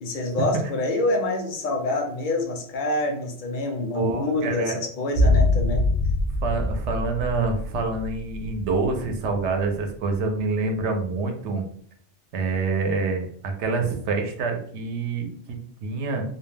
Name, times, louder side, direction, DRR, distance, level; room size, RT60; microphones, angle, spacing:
voice 1, 0.0-5.9, left 2 dB, 60° left, 3 dB, 0.6 m, -26 dB
voice 2, 3.9-4.8 6.4-11.6 12.3-13.3 13.6-16.2, right 4 dB, 80° right, 4 dB, 0.9 m, -26 dB
sound 1, 5.1-9.4 9.6-9.7, left 2 dB, 50° right, 0.6 m, -24 dB
2.3 x 2.2 x 3.2 m, 0.63 s
omnidirectional pair, 1.2 m